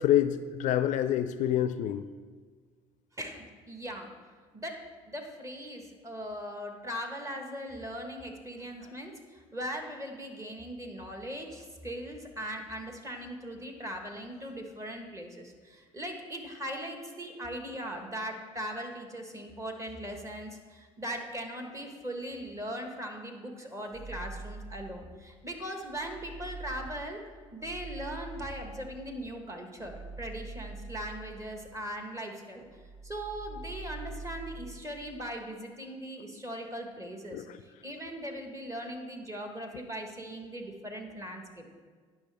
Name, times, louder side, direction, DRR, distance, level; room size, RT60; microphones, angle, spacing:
voice 1, 0.0-2.0 8.8-8.9 37.3-37.6, left 11 dB, 65° left, 12 dB, 0.4 m, -27 dB
voice 2, 3.2-4.1 4.5-27.2 27.5-32.7 33.0-41.7, equal, 20° right, 3 dB, 1.4 m, -39 dB
sound 1, 23.9-25.4 25.8-32.3 32.6-34.9, right 3 dB, 55° right, 1.4 m, -45 dB
10.5 x 6.0 x 3.5 m, 1.6 s
supercardioid pair, 70°, 14 cm